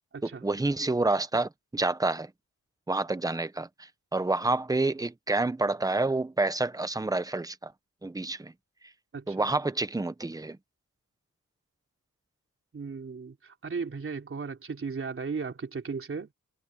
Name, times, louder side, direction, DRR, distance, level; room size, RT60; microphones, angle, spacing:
voice 1, 0.2-2.3 2.9-3.7 4.1-7.7 8.0-8.5 9.3-10.6, right 2 dB, 10° right, 0.9 m, -28 dB
voice 2, 12.7-16.3, right 5 dB, 40° right, 3.8 m, -36 dB
wide cardioid pair, 125°, 32 cm